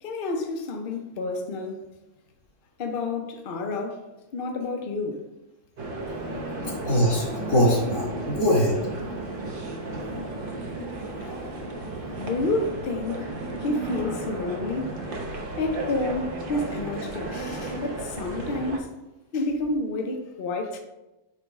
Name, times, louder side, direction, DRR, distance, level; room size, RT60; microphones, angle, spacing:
voice 1, 0.0-1.8 2.8-4.1 4.3-5.2 11.2-11.4 12.2-13.3 13.6-15.0 15.6-18.9 19.3-20.8, left 2 dB, 50° left, 0.8 m, -29 dB
sound 1, 5.8-18.8, right 2 dB, 45° right, 0.9 m, -34 dB
voice 2, 6.6-8.8, equal, 85° left, 2.3 m, -22 dB
8.9 x 3.1 x 3.5 m
omnidirectional pair, 1.5 m